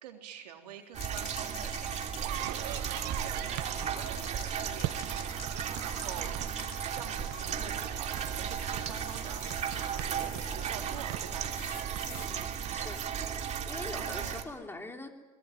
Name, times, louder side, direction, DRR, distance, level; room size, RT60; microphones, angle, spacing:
voice 1, 0.0-6.5 6.9-11.5 13.9-14.4, right 10 dB, 75° right, 3 dB, 3.6 m, -47 dB
sound 1, 0.9-14.4, right 8 dB, 35° right, 3.0 m, -35 dB
sound 2, 1.0-7.6 8.1-10.7 11.6-12.3, left 10 dB, 45° left, 2.9 m, -49 dB
sound 3, 2.2-12.9, right 18 dB, 50° right, 0.8 m, -42 dB
voice 2, 12.1-12.4 12.7-13.0 13.7-15.1, left 2 dB, 10° left, 3 dB, 3.5 m, -43 dB
24.0 x 21.0 x 9.3 m, 1.2 s
hypercardioid pair, 90°, 21 cm